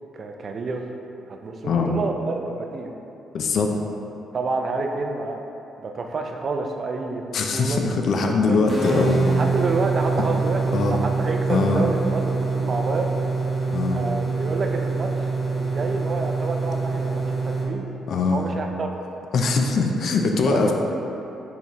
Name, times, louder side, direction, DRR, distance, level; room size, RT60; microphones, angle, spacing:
voice 1, 0.1-0.8 1.3-2.9 4.3-5.4 5.8-7.2 7.5-7.8 8.5-8.6 8.9-13.2 13.9-17.9 18.3-18.9 20.5-20.7, right 3 dB, 45° right, 3 dB, 0.4 m, -29 dB
voice 2, 3.3-3.7 7.3-9.3 10.7-11.0 11.5-11.9 13.7-14.0 18.1-18.6 19.3-20.7, left 4 dB, 65° left, 3 dB, 0.4 m, -22 dB
sound 1, 8.7-17.7, right 3 dB, 5° right, 1.0 m, -25 dB
4.4 x 3.3 x 2.9 m, 2.9 s
cardioid pair, 90°, 0 cm